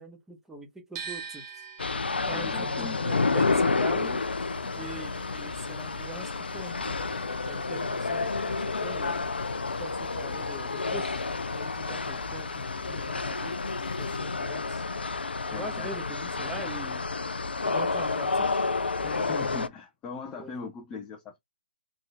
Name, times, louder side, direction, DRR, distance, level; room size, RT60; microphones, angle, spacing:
voice 1, 0.0-1.4 2.3-4.2 4.8-6.9 7.5-9.3 9.8-11.2 11.5-13.5 14.0-14.8 15.5-17.0 17.6-18.6 20.4-20.5, right 1 dB, 5° right, 1.4 m, -42 dB
sound 1, 1.0-7.0 7.3-8.6, right 7 dB, 30° right, 1.2 m, -45 dB
sound 2, 1.8-19.7, left 3 dB, 75° left, 0.5 m, -30 dB
voice 2, 2.3-3.0 4.6-4.9 15.5-15.9 19.0-21.4, left 5 dB, 15° left, 0.7 m, -39 dB
sound 3, 4.0-14.2, left 4 dB, 50° left, 0.9 m, -45 dB
3.8 x 3.7 x 3.3 m
figure-of-eight pair, 135°, 6 cm